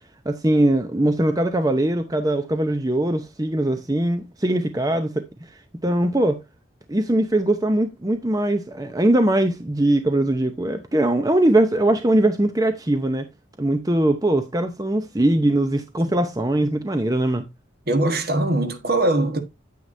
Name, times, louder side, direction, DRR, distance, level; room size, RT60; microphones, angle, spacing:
voice 1, 0.3-5.2 5.8-6.4 6.9-13.3 13.6-17.4, right 1 dB, 20° right, 0.7 m, -21 dB
voice 2, 17.9-19.4, right 2 dB, 50° right, 1.5 m, -21 dB
9.4 x 8.9 x 2.6 m
head